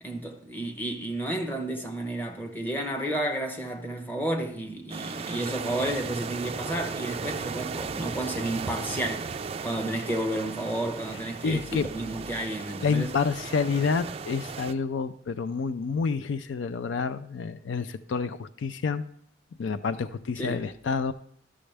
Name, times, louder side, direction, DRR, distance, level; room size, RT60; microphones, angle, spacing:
voice 1, 0.0-9.3 9.6-13.1 20.4-20.6, right 1 dB, 10° left, 0.9 m, -31 dB
sound 1, 4.9-14.7, right 5 dB, 30° right, 0.3 m, -36 dB
voice 2, 11.4-11.9 12.8-19.0 19.6-21.1, left 5 dB, 85° left, 0.4 m, -28 dB
12.0 x 6.3 x 3.3 m
head